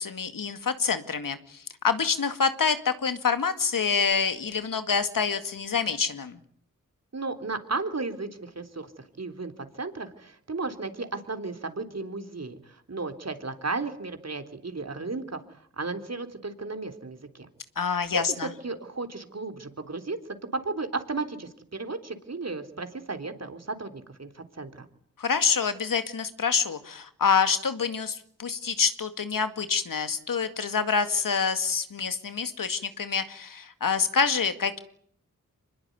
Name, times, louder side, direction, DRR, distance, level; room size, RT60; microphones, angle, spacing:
voice 1, 0.0-6.4 17.8-18.5 25.2-34.8, left 5 dB, 75° left, 10 dB, 2.2 m, -27 dB
voice 2, 7.1-8.9 9.2-17.5 17.8-20.2 20.5-24.9, right 3 dB, 50° right, 7 dB, 3.6 m, -34 dB
24.5 x 21.0 x 9.6 m, 0.65 s
cardioid pair, 50°, 33 cm